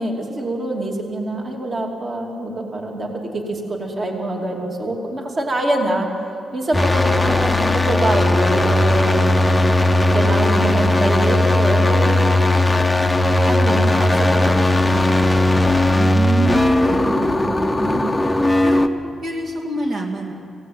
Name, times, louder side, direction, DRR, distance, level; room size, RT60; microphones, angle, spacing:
voice 1, 0.0-6.1 6.5-9.3 10.1-12.7 13.4-15.0, right 1 dB, 35° right, 1 dB, 2.8 m, -25 dB
sound 1, 6.7-18.9, left 1 dB, 10° left, 0.8 m, -17 dB
voice 2, 15.9-18.1 18.6-18.9 19.2-20.3, right 1 dB, 55° right, 0 dB, 2.6 m, -26 dB
25.5 x 17.0 x 9.3 m, 2.6 s
wide cardioid pair, 160°, 0 cm